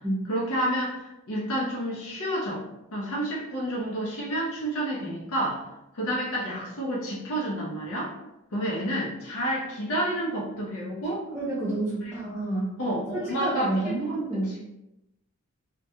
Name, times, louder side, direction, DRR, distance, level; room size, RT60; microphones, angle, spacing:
voice 1, 0.3-2.6 2.9-5.6 5.9-8.1 8.5-11.3 12.0-12.2 12.8-14.1, right 1 dB, 70° left, -4 dB, 0.6 m, -29 dB
voice 2, 11.3-12.7 13.4-14.7, right 2 dB, 10° right, -10 dB, 0.5 m, -29 dB
2.2 x 2.1 x 2.8 m, 0.91 s
head